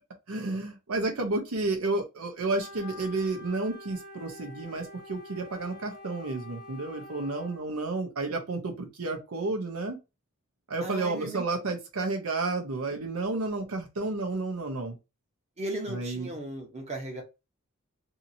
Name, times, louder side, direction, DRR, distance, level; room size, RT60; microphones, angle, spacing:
voice 1, 0.3-10.0 10.7-15.0 15.9-16.3, right 2 dB, 85° right, 0.8 m, -31 dB
Wind instrument woodwind instrument, 2.4-7.7, left 2 dB, ahead, 0.9 m, -46 dB
voice 2, 10.8-11.4 15.6-17.2, right 1 dB, 30° right, 0.9 m, -36 dB
2.8 x 2.7 x 2.7 m
head